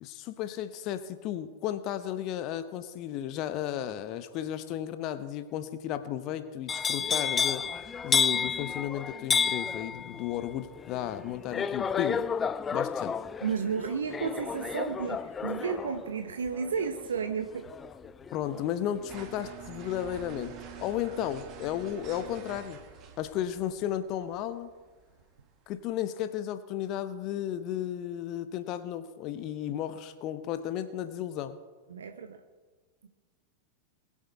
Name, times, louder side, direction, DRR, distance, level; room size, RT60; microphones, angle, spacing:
voice 1, 0.0-7.7 8.0-12.2 12.7-13.1 18.3-20.5 20.8-22.8 23.2-24.7 25.7-31.6, left 11 dB, 40° left, 12 dB, 0.7 m, -34 dB
sound 1, 6.7-18.6 19.0-19.4, left 6 dB, 20° left, 0.4 m, -31 dB
voice 2, 13.4-17.7 31.9-32.4 33.0-33.1, right 6 dB, 65° right, 7 dB, 0.8 m, -32 dB
sound 2, 19.1-25.8, right 7 dB, 35° right, 1.7 m, -47 dB
21.0 x 7.4 x 4.5 m, 1.4 s
figure-of-eight pair, 90°, 0 cm